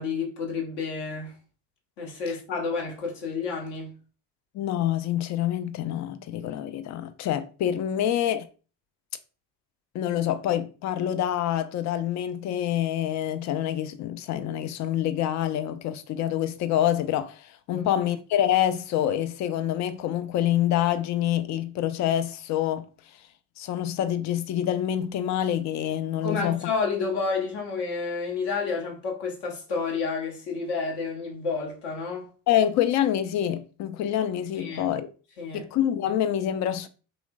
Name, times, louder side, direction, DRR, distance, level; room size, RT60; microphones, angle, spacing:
voice 1, 0.0-1.3 2.0-3.9 17.7-17.9 26.2-32.3 34.5-34.9 35.4-35.6, left 4 dB, 55° left, 1.2 m, -30 dB
voice 2, 4.5-8.5 9.9-22.9 23.6-26.6 32.5-35.1 35.5-36.9, left 11 dB, 40° left, 0.4 m, -26 dB
3.1 x 3.0 x 2.3 m
hypercardioid pair, 55°, 47 cm